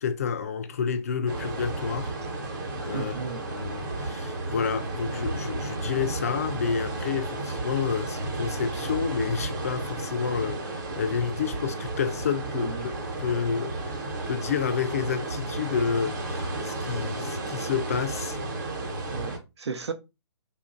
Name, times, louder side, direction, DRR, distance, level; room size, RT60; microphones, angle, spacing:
voice 1, 0.0-2.1 2.8-3.1 3.5-12.9 13.2-18.4, left 6 dB, 30° left, 0.4 m, -30 dB
sound 1, 1.3-19.4, right 2 dB, 45° right, 1.0 m, -33 dB
voice 2, 2.9-3.4 12.5-12.9 19.1-19.9, right 5 dB, 70° right, 0.7 m, -34 dB
3.0 x 2.5 x 3.7 m
hypercardioid pair, 160°, 15 cm